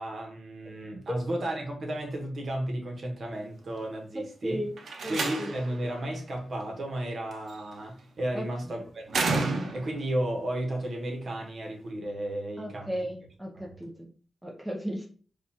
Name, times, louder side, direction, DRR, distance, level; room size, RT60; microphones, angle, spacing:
voice 1, 0.0-4.6 5.1-12.9 13.5-13.7, right 1 dB, 50° right, 1 dB, 1.1 m, -33 dB
voice 2, 4.1-4.8 5.0-5.5 8.3-8.8 12.6-14.1 14.4-15.1, equal, 5° right, -2 dB, 0.7 m, -35 dB
Slam, 4.8-5.8 7.3-7.7 9.1-10.1, right 3 dB, 70° right, 0.6 m, -30 dB
5.0 x 2.4 x 2.9 m, 0.41 s
wide cardioid pair, 150°, 0 cm